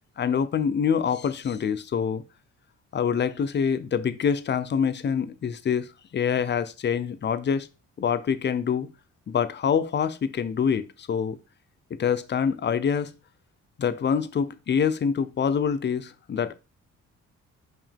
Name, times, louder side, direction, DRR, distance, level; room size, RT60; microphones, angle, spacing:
voice 1, 0.2-2.2 2.9-7.7 8.0-8.9 9.3-11.4 12.0-13.1 13.8-16.5, left 7 dB, 35° left, 0.6 m, -25 dB
6.0 x 4.6 x 3.5 m
cardioid pair, 90°, 30 cm